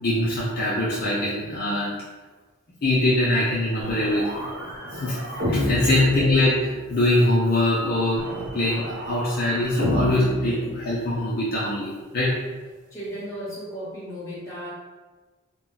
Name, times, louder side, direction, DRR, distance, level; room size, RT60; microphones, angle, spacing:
voice 1, 0.0-1.9 2.8-4.5 4.9-5.2 5.4-12.3, left 1 dB, 45° left, -7 dB, 0.4 m, -23 dB
sound 1, 3.8-7.1 8.2-11.4, left 1 dB, 50° right, 0.8 m, -29 dB
voice 2, 12.9-14.7, equal, 15° left, -9 dB, 0.8 m, -35 dB
2.2 x 2.0 x 3.8 m, 1.3 s
head